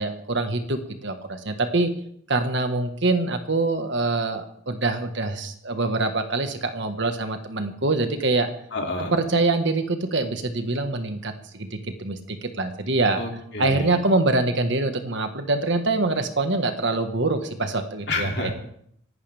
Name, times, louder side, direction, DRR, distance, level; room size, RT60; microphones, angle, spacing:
voice 1, 0.0-1.9 2.3-8.5 9.1-13.2 13.6-18.5, right 2 dB, 55° right, 7 dB, 1.5 m, -24 dB
voice 2, 8.7-9.1 13.2-13.9 18.1-18.5, left 2 dB, 55° left, 1 dB, 2.9 m, -29 dB
25.5 x 11.5 x 3.5 m, 0.69 s
head